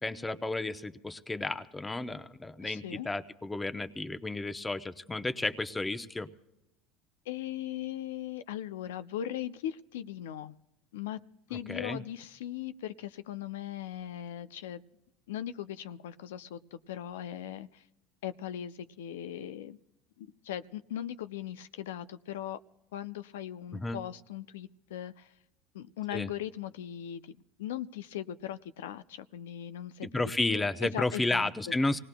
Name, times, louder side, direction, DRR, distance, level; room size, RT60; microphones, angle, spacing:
voice 1, 0.0-6.3 11.7-12.0 23.7-24.0 26.1-26.3 30.1-32.0, left 2 dB, 15° left, 11 dB, 0.8 m, -32 dB
voice 2, 2.6-3.1 7.3-10.6 10.9-11.2 11.5-14.8 15.3-17.8 18.2-19.8 20.2-22.6 22.9-25.3 25.7-30.1 30.5-31.5, left 11 dB, 90° left, 12 dB, 0.4 m, -39 dB
26.0 x 18.5 x 2.2 m, 0.94 s
supercardioid pair, 100°, 0 cm